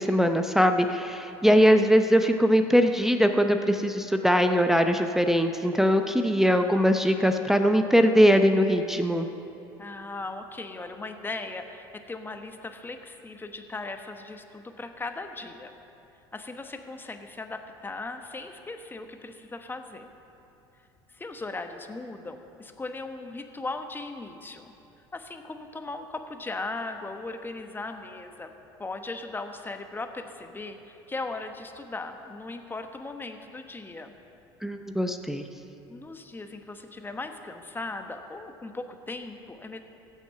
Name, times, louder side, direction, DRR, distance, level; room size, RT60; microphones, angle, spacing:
voice 1, 0.0-9.3 34.6-35.5, equal, 5° right, 5 dB, 0.7 m, -21 dB
voice 2, 1.5-1.9 9.8-15.7 16.3-20.1 21.1-24.7 25.1-28.5 28.8-34.1 35.9-39.8, left 3 dB, 15° left, 6 dB, 1.1 m, -38 dB
15.0 x 7.3 x 5.8 m, 2.8 s
hypercardioid pair, 75°, 12 cm